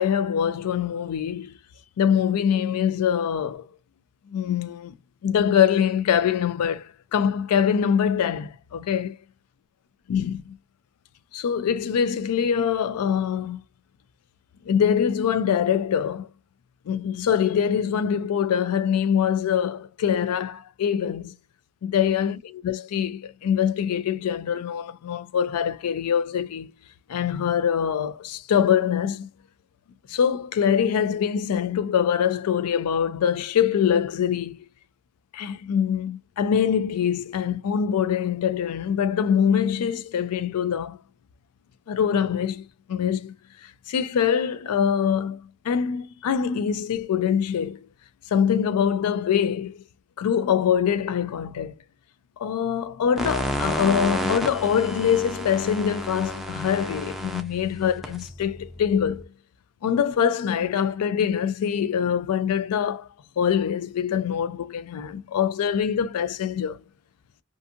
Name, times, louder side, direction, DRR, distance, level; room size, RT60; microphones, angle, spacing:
voice 1, 0.0-1.5 2.0-3.7 4.3-5.0 5.2-9.1 10.1-10.6 11.3-13.6 14.6-16.3 16.9-21.4 21.8-26.7 27.1-29.3 30.1-34.6 35.3-41.0 41.9-43.3 43.6-47.9 48.3-49.8 50.2-51.7 52.4-59.3 59.8-63.1 63.4-66.8, left 8 dB, 85° left, 0.3 m, -24 dB
sound 1, 53.2-59.2, equal, ahead, 0.3 m, -31 dB
2.6 x 2.5 x 2.4 m
head